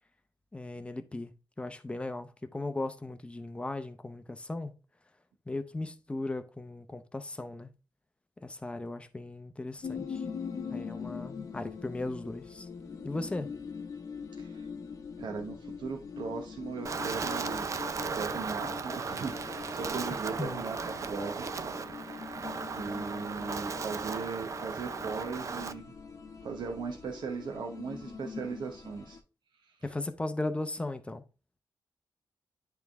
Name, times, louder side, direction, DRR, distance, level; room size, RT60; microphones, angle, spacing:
voice 1, 0.5-1.3 1.6-4.7 5.5-7.7 8.4-10.2 10.7-12.7 13.0-13.5 20.4-20.6 29.8-31.2, left 2 dB, 15° left, 0.7 m, -37 dB
sound 1, 9.8-29.2, left 5 dB, 45° left, 0.9 m, -43 dB
voice 2, 14.4-14.7 15.2-17.7 18.1-21.5 22.7-25.9 26.4-29.2 29.6-29.7, right 5 dB, 70° right, 1.0 m, -38 dB
Wind, 16.8-25.7, right 5 dB, 40° right, 0.5 m, -36 dB
10.0 x 3.5 x 3.5 m
wide cardioid pair, 120°, 8 cm